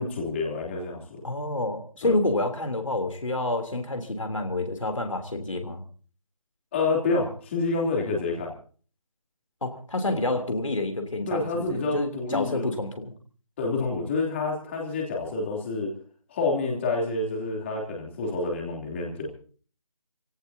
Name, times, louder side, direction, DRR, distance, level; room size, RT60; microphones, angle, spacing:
voice 1, 0.0-1.2 2.0-2.2 6.7-8.5 11.3-12.8 13.6-15.9 16.3-19.3, left 3 dB, 20° left, -1 dB, 3.2 m, -28 dB
voice 2, 1.2-5.8 9.6-13.1, left 2 dB, 65° left, 5 dB, 3.3 m, -28 dB
27.5 x 17.0 x 2.8 m, 0.43 s
figure-of-eight pair, 155°, 18 cm